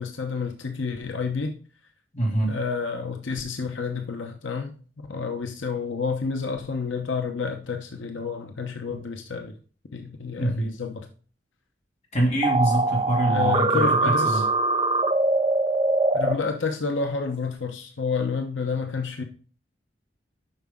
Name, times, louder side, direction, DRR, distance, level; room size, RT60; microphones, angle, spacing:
voice 1, 0.0-1.6 2.5-4.7 5.0-9.5 9.9-11.1 13.3-14.4 16.1-19.2, left 5 dB, 90° left, 4 dB, 0.9 m, -29 dB
voice 2, 2.1-2.5 10.4-10.7 12.1-14.4, right 1 dB, 35° left, -2 dB, 2.5 m, -25 dB
sound 1, 12.4-16.3, right 2 dB, 25° right, 0.5 m, -22 dB
7.9 x 5.8 x 3.6 m, 0.40 s
head